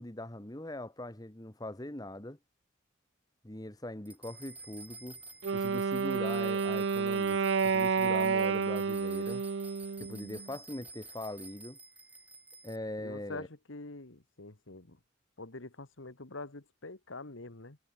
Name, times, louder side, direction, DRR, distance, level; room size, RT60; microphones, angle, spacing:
voice 1, 0.0-2.4 3.4-5.2 5.5-9.4 10.0-11.8 12.6-13.5, left 1 dB, 20° left, 1.6 m, -41 dB
sound 1, 4.1-12.8, right 3 dB, 10° right, 3.4 m, -51 dB
Wind instrument woodwind instrument, 5.4-10.5, right 5 dB, 65° right, 0.5 m, -30 dB
voice 2, 13.0-15.0 15.4-17.8, left 2 dB, 75° left, 1.9 m, -45 dB
head